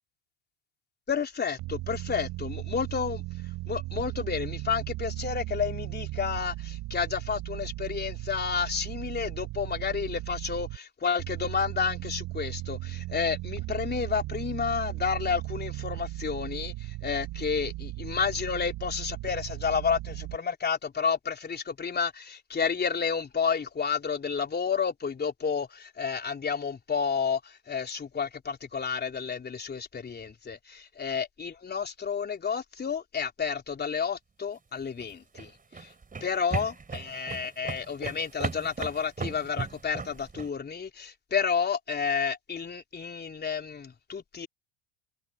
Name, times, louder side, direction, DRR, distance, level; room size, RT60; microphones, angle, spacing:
voice 1, 1.1-3.2 3.7-35.5 35.8-35.9 36.2-44.5, left 6 dB, 25° left, 3.6 m, -31 dB
sound 1, 1.6-10.8 11.2-20.4, right 19 dB, 60° right, 4.5 m, -37 dB
sound 2, 34.8-40.5, right 4 dB, 20° right, 4.7 m, -36 dB
hypercardioid pair, 85°, 38 cm